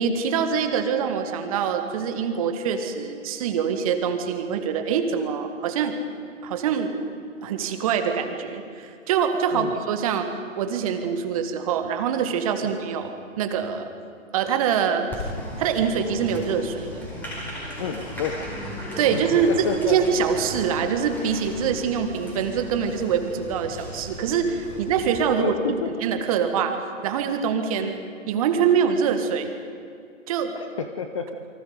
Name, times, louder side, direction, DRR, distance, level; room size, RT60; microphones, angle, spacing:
voice 1, 0.0-6.0 6.4-6.9 7.4-10.3 10.6-13.9 14.3-15.1 15.6-17.1 19.0-26.8 27.0-27.9 28.3-29.6 30.3-30.5, right 7 dB, 25° right, 6 dB, 1.8 m, -24 dB
Applause, 15.1-25.3, left 1 dB, 5° left, 4.9 m, -36 dB
voice 2, 17.8-18.4 19.1-20.0 25.4-25.9 30.5-31.4, left 6 dB, 25° left, 7 dB, 0.9 m, -30 dB
29.5 x 24.0 x 5.2 m, 2.5 s
figure-of-eight pair, 150°, 39 cm